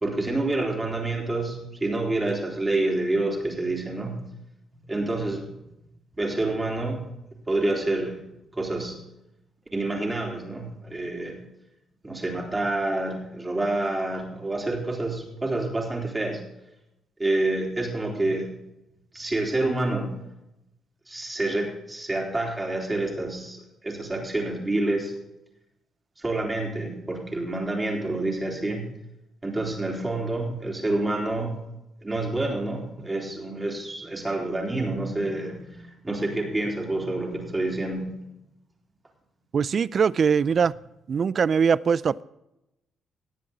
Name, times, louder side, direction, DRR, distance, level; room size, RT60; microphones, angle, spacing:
voice 1, 0.0-4.2 4.9-5.4 6.2-7.0 7.5-8.1 8.5-9.0 9.7-11.4 12.0-16.4 17.2-18.5 19.1-20.1 21.1-25.1 26.2-28.9 29.4-31.6 32.0-38.1 40.5-40.6, right 2 dB, 20° right, 3.8 m, -28 dB
voice 2, 39.5-40.7 41.1-42.2, right 6 dB, 50° right, 0.4 m, -22 dB
19.0 x 7.7 x 4.0 m
cardioid pair, 90°, 0 cm